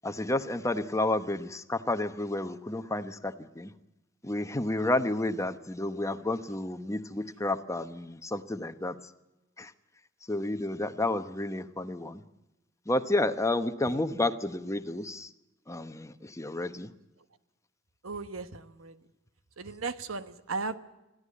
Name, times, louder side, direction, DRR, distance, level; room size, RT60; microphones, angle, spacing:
voice 1, 0.0-3.7 4.2-9.0 9.6-9.7 10.3-12.2 12.9-15.3 15.7-16.9, left 2 dB, 15° left, 10 dB, 0.9 m, -31 dB
voice 2, 18.0-19.0 19.6-20.7, right 4 dB, 85° right, 11 dB, 1.2 m, -36 dB
21.0 x 15.0 x 8.4 m, 1.0 s
head